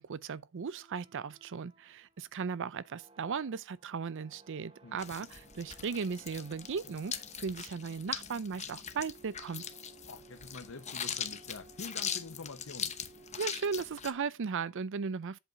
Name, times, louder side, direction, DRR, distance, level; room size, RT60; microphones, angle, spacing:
voice 1, 0.0-9.6 13.4-15.4, right 5 dB, 60° right, 0.5 m, -37 dB
sound 1, 0.6-14.4, right 3 dB, 25° right, 0.9 m, -59 dB
sound 2, 5.0-14.1, left 8 dB, 30° left, 0.8 m, -41 dB
voice 2, 10.1-12.9, left 3 dB, 65° left, 0.8 m, -46 dB
7.9 x 3.8 x 5.7 m
head